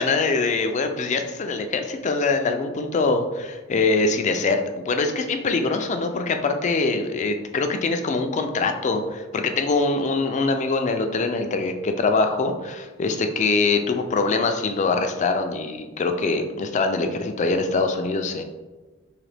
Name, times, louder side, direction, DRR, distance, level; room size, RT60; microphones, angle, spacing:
voice 1, 0.0-18.4, left 3 dB, 35° left, 6 dB, 0.4 m, -23 dB
3.8 x 2.8 x 3.4 m, 1.2 s
head